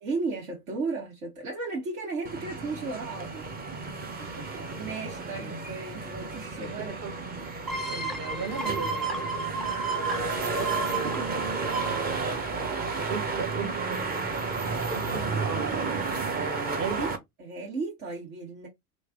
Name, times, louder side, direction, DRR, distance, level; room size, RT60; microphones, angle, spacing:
voice 1, 0.0-3.5 4.8-7.0 10.5-12.0 17.4-18.7, right 3 dB, 65° right, 1.8 m, -35 dB
sound 1, 2.2-17.2, right 4 dB, 20° right, 0.8 m, -32 dB
voice 2, 3.7-4.8 6.6-9.2 10.9-11.1 13.1-14.4 14.9-15.7 16.2-17.2, right 4 dB, 35° right, 1.1 m, -37 dB
sound 2, 7.7-13.2 13.6-13.7, right 4 dB, ahead, 0.3 m, -33 dB
3.1 x 2.6 x 3.6 m
figure-of-eight pair, 80°, 45 cm